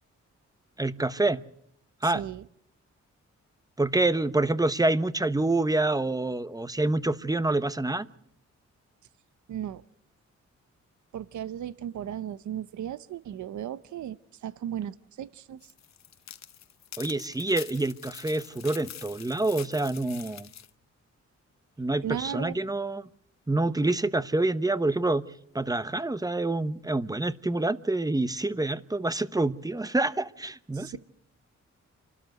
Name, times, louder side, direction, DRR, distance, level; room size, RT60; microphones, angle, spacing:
voice 1, 0.8-1.4 2.0-2.2 3.8-8.1 17.0-20.5 21.8-23.0 23.5-25.2 25.5-31.0, right 2 dB, 10° right, 1.0 m, -27 dB
voice 2, 2.0-2.4 9.5-9.8 11.1-14.2 14.4-15.6 22.0-22.6 30.7-31.0, right 10 dB, 85° right, 0.7 m, -35 dB
sound 1, 15.6-20.7, left 9 dB, 65° left, 0.9 m, -45 dB
28.0 x 12.5 x 8.1 m
cardioid pair, 75°, 29 cm